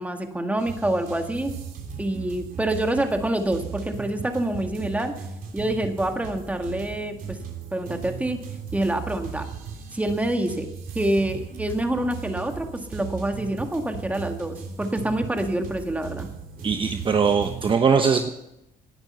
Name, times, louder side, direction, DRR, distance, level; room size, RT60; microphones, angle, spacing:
voice 1, 0.0-1.5 2.0-5.1 5.5-7.4 7.7-8.4 8.7-9.5 9.9-10.7 10.9-16.3, right 1 dB, 10° right, 5 dB, 2.0 m, -26 dB
sound 1, 0.6-17.8, right 6 dB, 55° right, 3.5 m, -37 dB
voice 2, 16.6-18.3, right 5 dB, 30° right, 6 dB, 1.0 m, -21 dB
18.5 x 10.5 x 5.6 m, 0.86 s
cardioid pair, 110°, 17 cm